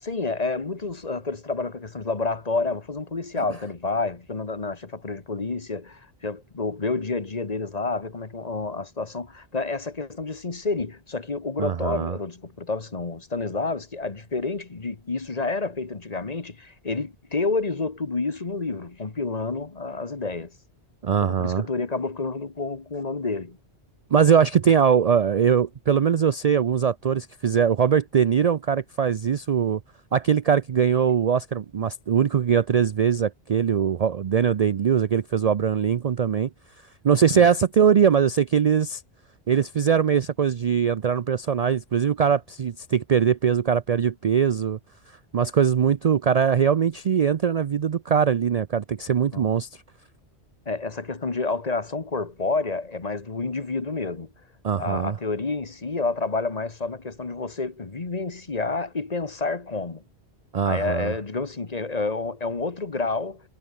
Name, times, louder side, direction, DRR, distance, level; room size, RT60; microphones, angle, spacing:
voice 1, 0.0-20.5 21.2-23.6 37.3-37.5 49.3-49.5 50.6-54.3 54.8-60.0 60.6-63.4, left 3 dB, 35° left, 1.5 m, -29 dB
voice 2, 11.6-12.2 21.0-21.6 24.1-29.8 30.1-36.5 37.0-39.0 39.5-44.8 45.3-49.7 54.6-55.1 60.5-61.1, right 7 dB, 50° right, 0.5 m, -21 dB
omnidirectional pair, 1.1 m